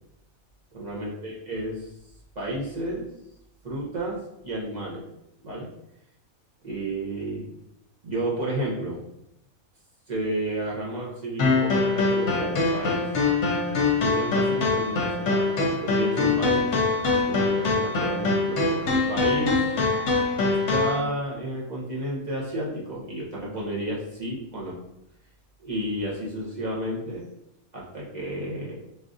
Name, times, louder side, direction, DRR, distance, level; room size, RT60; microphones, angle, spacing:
voice 1, 0.7-1.9 2.4-3.1 3.6-5.0 5.4-5.7 6.6-7.4 8.0-9.0 10.1-13.0 14.0-16.7 17.1-19.6 20.5-24.8 25.6-27.2 27.7-28.8, right 1 dB, 40° right, -5 dB, 0.6 m, -31 dB
sound 1, 11.4-21.0, left 3 dB, 60° left, 0.9 m, -23 dB
4.1 x 2.5 x 2.5 m, 0.81 s
omnidirectional pair, 1.5 m